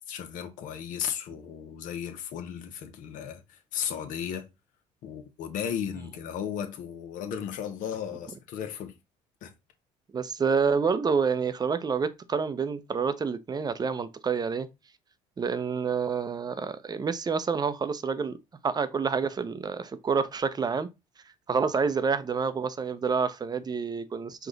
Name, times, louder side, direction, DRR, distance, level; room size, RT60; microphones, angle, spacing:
voice 1, 0.1-4.5 5.0-9.0 9.4-9.5, left 8 dB, 70° left, 1.0 m, -35 dB
voice 2, 10.1-14.7 15.4-18.4 18.6-20.9 21.5-24.5, right 5 dB, 30° right, 0.6 m, -28 dB
5.0 x 2.5 x 3.9 m
supercardioid pair, 80°, 14 cm